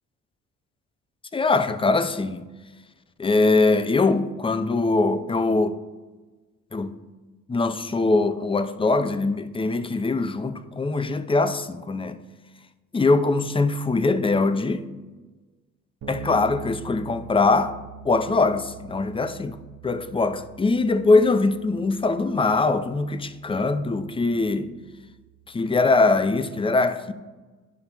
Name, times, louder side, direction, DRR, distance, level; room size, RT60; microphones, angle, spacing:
voice 1, 1.3-2.4 3.2-5.8 6.7-7.0 7.5-12.2 12.9-14.8 16.1-17.7 18.0-19.6 19.8-24.7 25.5-27.1, left 3 dB, 15° left, 0.5 m, -22 dB
Bass guitar, 16.0-25.7, right 4 dB, 85° right, 1.1 m, -44 dB
10.5 x 5.6 x 3.0 m
cardioid pair, 70°, 32 cm